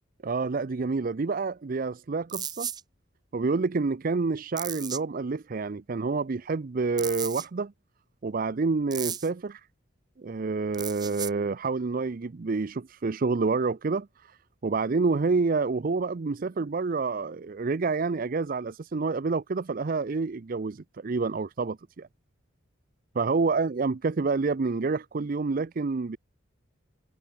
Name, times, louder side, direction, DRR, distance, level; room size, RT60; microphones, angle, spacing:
voice 1, 0.2-2.7 3.3-7.7 8.2-9.6 10.2-14.1 14.6-22.1 23.1-26.2, right 4 dB, 45° right, 0.5 m, -28 dB
sound 1, 2.3-2.8 4.6-5.0 7.0-7.5 8.9-9.3 10.7-11.3, right 8 dB, 20° right, 0.9 m, -34 dB
head